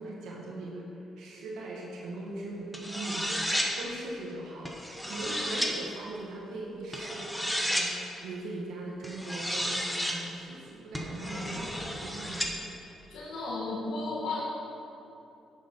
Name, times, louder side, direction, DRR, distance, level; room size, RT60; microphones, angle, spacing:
voice 1, 0.0-12.6, right 2 dB, 85° right, -3 dB, 1.2 m, -40 dB
sound 1, 2.7-3.7 4.7-5.7 6.9-7.9 9.0-10.2 10.9-12.5, equal, 5° left, 1.1 m, -32 dB
voice 2, 13.1-14.4, left 2 dB, 80° left, -5 dB, 1.6 m, -34 dB
9.6 x 7.1 x 4.3 m, 2.9 s
cardioid pair, 90°, 0 cm